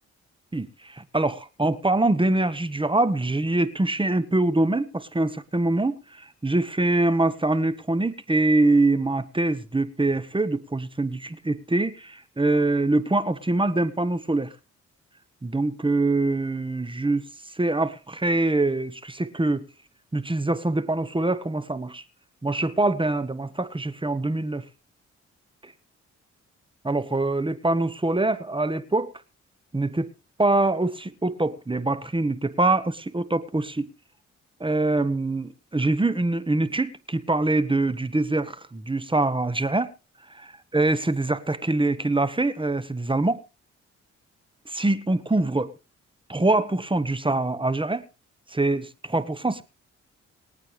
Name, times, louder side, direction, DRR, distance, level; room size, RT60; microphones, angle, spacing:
voice 1, 0.5-14.5 15.4-17.3 17.6-19.7 20.1-22.0 22.4-24.7 25.6-25.7 26.8-29.1 29.7-30.1 30.4-33.9 34.6-39.9 40.3-43.4 44.7-45.7 46.3-48.0 48.5-49.6, right 2 dB, 15° right, 1.3 m, -24 dB
24.5 x 9.0 x 3.2 m
cardioid pair, 65°, 29 cm